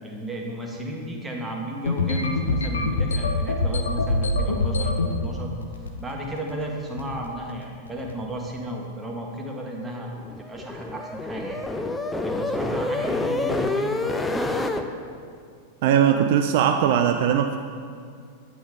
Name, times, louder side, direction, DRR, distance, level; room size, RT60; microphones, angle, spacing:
voice 1, 0.0-5.5 6.0-10.1 10.4-11.6 12.2-14.5, equal, 10° right, -1 dB, 1.3 m, -34 dB
sound 1, 1.9-5.1 5.6-6.1 6.4-6.6 7.0-7.3 7.9-8.1, left 2 dB, 70° left, 0.6 m, -24 dB
sound 2, 10.1-14.8, left 2 dB, 10° left, 0.5 m, -27 dB
voice 2, 15.8-17.6, right 9 dB, 50° right, 6 dB, 0.3 m, -20 dB
8.5 x 8.1 x 3.5 m, 2.2 s
figure-of-eight pair, 90°, 0 cm